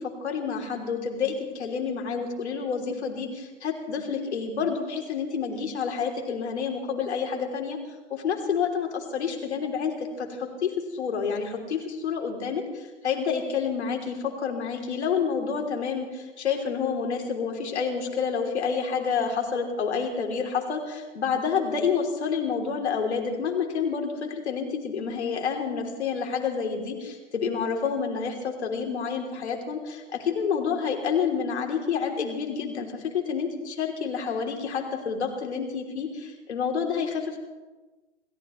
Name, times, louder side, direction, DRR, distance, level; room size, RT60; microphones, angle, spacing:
voice 1, 0.0-7.8 8.1-37.4, left 6 dB, 65° left, 2 dB, 3.3 m, -29 dB
28.5 x 14.5 x 3.2 m, 1.2 s
figure-of-eight pair, 115°, 36 cm